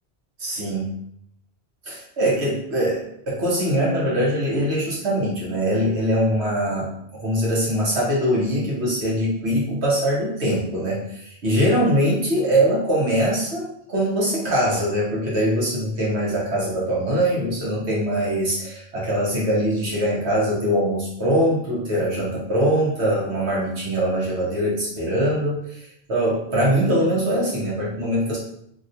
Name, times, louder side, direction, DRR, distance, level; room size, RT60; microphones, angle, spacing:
voice 1, 0.4-0.9 1.8-28.4, equal, 80° right, -6 dB, 1.4 m, -22 dB
2.9 x 2.9 x 2.6 m, 0.72 s
omnidirectional pair, 1.1 m